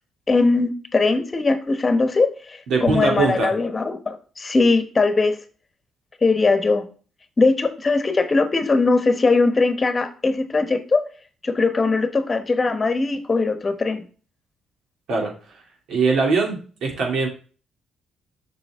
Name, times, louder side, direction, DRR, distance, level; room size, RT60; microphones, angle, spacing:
voice 1, 0.3-5.4 6.2-6.8 7.4-11.0 11.4-14.0, left 3 dB, 30° left, 9 dB, 1.1 m, -20 dB
voice 2, 2.7-3.5 15.1-15.3 15.9-17.3, right 4 dB, 75° right, 0 dB, 2.9 m, -21 dB
7.1 x 6.2 x 3.6 m, 0.38 s
cardioid pair, 90°, 0 cm